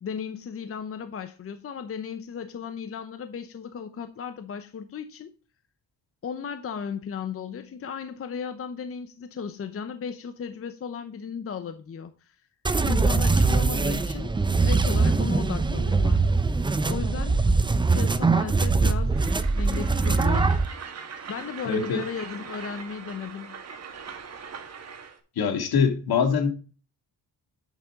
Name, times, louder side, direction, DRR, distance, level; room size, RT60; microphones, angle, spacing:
voice 1, 0.0-5.3 6.2-12.4 12.8-14.3 14.6-16.3 16.9-17.5 17.9-19.2 19.6-20.5 21.3-23.6, left 6 dB, 35° left, 0.8 m, -35 dB
sound 1, 12.6-20.7, right 3 dB, 10° right, 0.6 m, -22 dB
Train, 19.1-25.2, right 6 dB, 40° right, 1.6 m, -41 dB
voice 2, 21.7-22.0 25.4-26.5, left 6 dB, 70° left, 2.1 m, -23 dB
8.4 x 6.9 x 3.6 m
cardioid pair, 130°, 39 cm